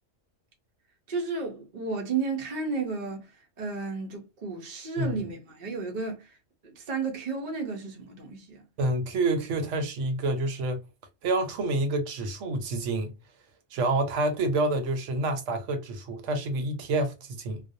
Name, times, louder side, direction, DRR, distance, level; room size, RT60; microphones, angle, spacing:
voice 1, 1.1-3.3 3.6-6.4 6.6-8.6, right 4 dB, 50° right, 0.6 m, -33 dB
voice 2, 8.8-10.8 11.2-13.1 13.7-17.6, right 2 dB, 75° right, 1.0 m, -28 dB
2.4 x 2.0 x 2.6 m
omnidirectional pair, 1.3 m